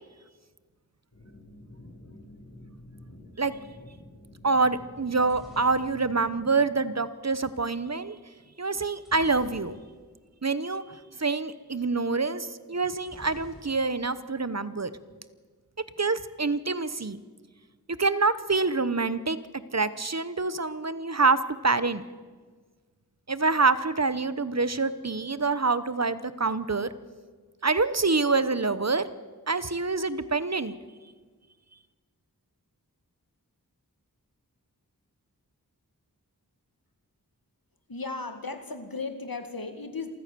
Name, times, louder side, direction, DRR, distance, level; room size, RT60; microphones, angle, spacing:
sound 1, 1.1-6.6, left 1 dB, 90° left, 6.4 m, -49 dB
voice 1, 4.4-8.2 8.6-9.8 10.4-10.8 11.2-14.9 16.0-17.2 18.0-19.4 19.7-22.0 23.3-26.9 27.6-29.0 29.5-30.8, right 3 dB, 45° right, 14 dB, 1.0 m, -26 dB
sound 2, 5.0-7.1 9.0-10.2 10.5-10.6 10.9-11.1 13.0-14.2 14.5-15.1, equal, ahead, 7.0 m, -51 dB
voice 2, 37.9-40.1, left 3 dB, 75° left, 7 dB, 2.2 m, -35 dB
27.0 x 15.0 x 6.9 m, 1.5 s
wide cardioid pair, 50°, 36 cm